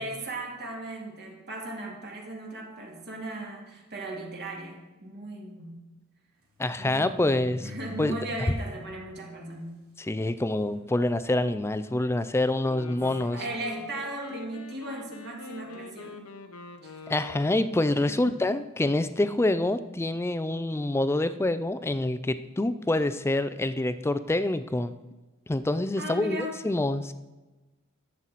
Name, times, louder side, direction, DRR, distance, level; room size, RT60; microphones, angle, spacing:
voice 1, 0.0-5.8 6.8-9.8 13.3-16.3 16.8-17.0 25.9-26.5, right 1 dB, 50° right, 0 dB, 1.9 m, -37 dB
sound 1, 2.8-3.0 3.8-3.9 4.2-4.3 5.6-5.7 6.4-8.6 9.1-9.2 10.0-10.1 10.5-10.8 11.5-11.6 12.9-13.7 14.7-14.9, left 2 dB, 75° right, 2.9 m, -48 dB
voice 2, 6.6-7.7 8.0-8.1 10.0-13.4 17.1-25.0 25.5-27.1, left 2 dB, 10° left, 12 dB, 0.4 m, -26 dB
Wind instrument woodwind instrument, 12.6-17.8, left 4 dB, 85° left, 0.9 m, -44 dB
11.5 x 7.6 x 4.1 m, 1.1 s
head